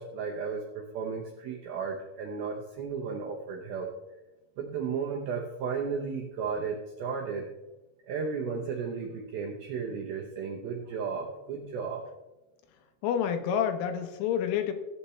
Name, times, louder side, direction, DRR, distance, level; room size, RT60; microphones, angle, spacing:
voice 1, 0.0-3.9 4.6-7.5 8.1-12.1, right 5 dB, 85° right, 0 dB, 2.1 m, -34 dB
voice 2, 13.0-14.7, left 8 dB, 80° left, 7 dB, 3.4 m, -28 dB
16.0 x 8.6 x 3.2 m, 1.1 s
omnidirectional pair, 5.6 m